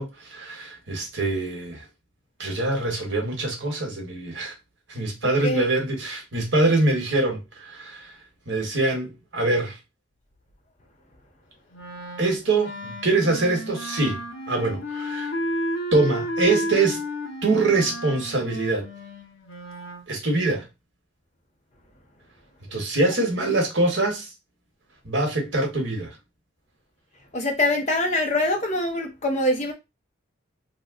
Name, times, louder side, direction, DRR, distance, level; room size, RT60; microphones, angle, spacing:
voice 1, 0.0-1.8 2.4-4.5 4.9-8.1 8.5-9.8 12.2-15.3 15.9-17.0 17.4-18.9 20.1-20.7 22.7-24.3 25.0-26.2, right 2 dB, 60° right, 1.1 m, -24 dB
Wind instrument woodwind instrument, 11.7-20.0, equal, 75° left, 0.7 m, -32 dB
voice 2, 27.3-29.7, left 1 dB, 35° left, 0.6 m, -24 dB
2.9 x 2.1 x 3.5 m
head